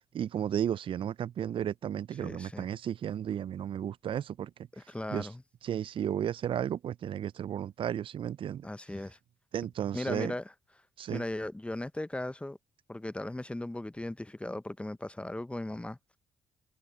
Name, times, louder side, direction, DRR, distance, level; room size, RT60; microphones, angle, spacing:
voice 1, 0.1-4.5 5.1-5.3 5.6-8.6 9.5-10.3 11.0-11.2, right 10 dB, 50° right, 0.4 m, -33 dB
voice 2, 2.2-2.7 4.7-5.4 8.6-9.2 9.9-10.5 11.1-12.6 12.9-16.0, left 1 dB, 10° left, 0.8 m, -37 dB
hypercardioid pair, 50°, 11 cm